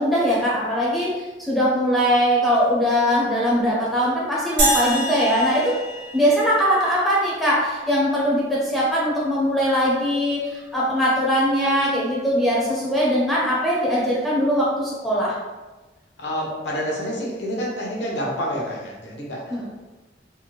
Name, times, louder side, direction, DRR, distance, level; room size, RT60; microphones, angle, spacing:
voice 1, 0.0-5.8 6.1-15.3 19.5-19.7, equal, ahead, -7 dB, 0.5 m, -21 dB
sound 1, 4.6-7.0, right 1 dB, 85° right, 1.0 m, -25 dB
voice 2, 16.2-19.7, equal, 85° left, -3 dB, 0.9 m, -28 dB
3.4 x 2.0 x 3.1 m, 1.2 s
head